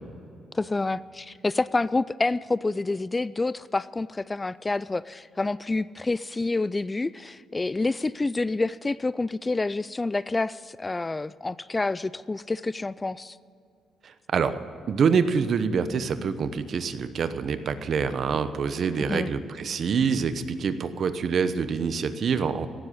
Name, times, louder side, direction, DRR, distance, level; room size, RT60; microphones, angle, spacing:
voice 1, 0.5-13.4 19.1-19.3, left 3 dB, 20° left, 19 dB, 0.3 m, -28 dB
voice 2, 14.0-14.5 14.9-22.7, right 6 dB, 55° right, 11 dB, 0.9 m, -26 dB
16.5 x 7.7 x 9.6 m, 2.5 s
cardioid pair, 90°, 0 cm